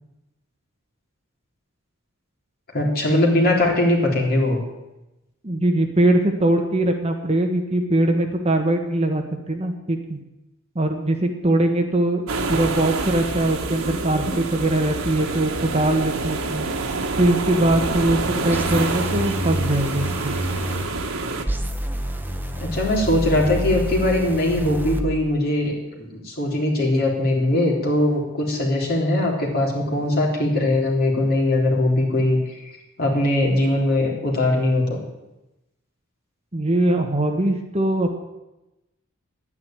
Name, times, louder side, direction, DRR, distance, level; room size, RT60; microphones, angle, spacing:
voice 1, 2.7-4.6 22.6-32.5 33.0-35.0, left 1 dB, 45° left, -1 dB, 3.6 m, -21 dB
voice 2, 5.4-10.2 10.7-16.6 17.2-20.3 36.5-38.2, right 1 dB, 30° right, 4 dB, 1.3 m, -21 dB
sound 1, 12.3-21.5, right 3 dB, 85° right, 1.4 m, -27 dB
sound 2, 18.5-20.8 21.5-25.0, right 1 dB, 10° right, 0.9 m, -28 dB
11.0 x 9.8 x 9.2 m, 0.96 s
head